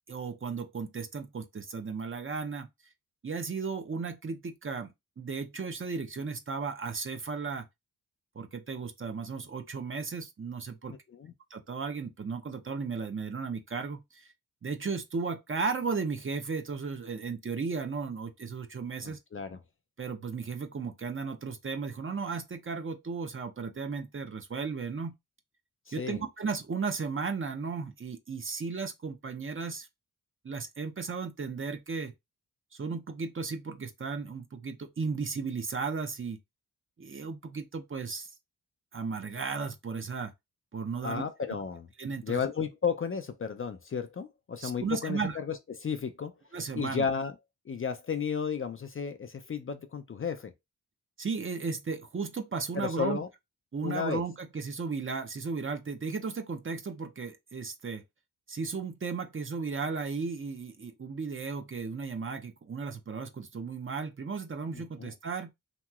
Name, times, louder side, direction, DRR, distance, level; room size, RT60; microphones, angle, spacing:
voice 1, 0.1-2.7 3.2-7.7 8.4-10.9 11.5-14.3 14.6-19.2 20.0-25.1 25.9-29.9 30.4-32.1 32.7-36.4 37.0-38.3 38.9-40.3 40.7-41.2 42.0-42.4 44.6-45.4 46.5-47.1 51.2-53.2 53.7-58.0 58.5-65.5, right 5 dB, 35° right, 0.7 m, -35 dB
voice 2, 10.9-11.3 19.0-19.6 25.9-26.2 41.0-41.9 42.2-46.3 46.7-47.3 47.7-50.5 52.7-53.3 53.8-54.2 64.7-65.1, left 6 dB, 35° left, 0.5 m, -33 dB
2.9 x 2.8 x 2.4 m
cardioid pair, 55°, 38 cm